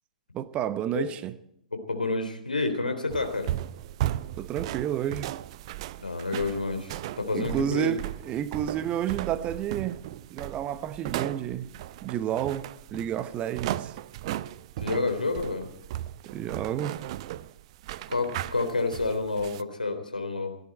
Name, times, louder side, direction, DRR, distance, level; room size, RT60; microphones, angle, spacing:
voice 1, 0.3-1.3 4.4-5.3 7.3-10.0 10.3-11.7 12.0-13.9 16.3-17.0, right 10 dB, 25° right, 0.9 m, -30 dB
voice 2, 1.7-3.6 6.0-8.0 14.8-15.7 18.1-20.6, left 3 dB, 80° left, 3.4 m, -29 dB
sound 1, 3.1-19.6, right 14 dB, 45° right, 0.6 m, -36 dB
29.5 x 11.0 x 4.4 m
figure-of-eight pair, 110°, 4 cm